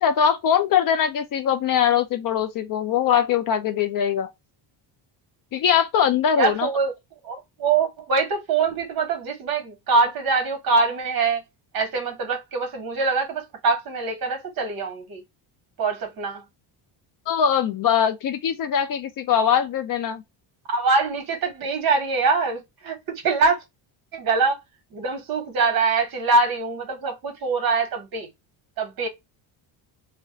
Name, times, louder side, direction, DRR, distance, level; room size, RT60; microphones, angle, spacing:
voice 1, 0.0-4.3 5.5-6.7 17.3-20.2, left 8 dB, 50° left, 0.5 m, -21 dB
voice 2, 6.4-6.9 7.2-11.4 11.7-15.2 15.8-16.4 20.7-23.0 23.2-23.6 24.1-24.6 24.9-28.3 28.8-29.1, right 4 dB, 50° right, 1.2 m, -23 dB
2.4 x 2.1 x 3.7 m
cardioid pair, 140°, 46 cm